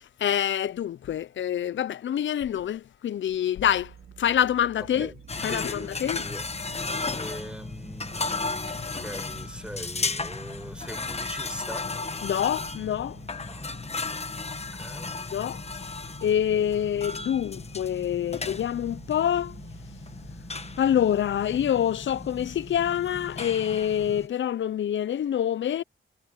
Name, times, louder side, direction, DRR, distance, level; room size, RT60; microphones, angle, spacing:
voice 1, 0.2-3.9 4.2-5.1 5.4-6.2 12.2-13.2 15.3-15.6 16.2-19.6 20.8-25.8, left 10 dB, 65° left, 0.5 m, -26 dB
sound 1, 3.6-23.6, right 8 dB, 85° right, 3.5 m, -49 dB
voice 2, 5.0-6.7 7.1-11.9 13.4-13.7 14.7-15.3, right 1 dB, 5° right, 5.4 m, -42 dB
sound 2, 5.3-24.3, left 4 dB, 30° left, 1.3 m, -35 dB
wide cardioid pair, 105°, 21 cm